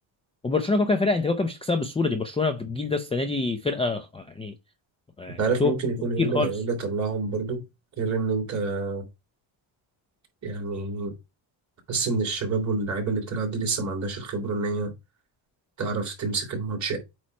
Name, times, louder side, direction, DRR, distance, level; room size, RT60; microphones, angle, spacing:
voice 1, 0.4-4.5 5.2-5.7 6.2-6.5, left 3 dB, 10° left, 0.5 m, -25 dB
voice 2, 5.4-7.6 8.0-9.1 10.4-11.1 11.9-14.9 15.8-17.0, right 4 dB, 35° right, 3.2 m, -28 dB
8.4 x 3.1 x 4.4 m
cardioid pair, 150°, 48 cm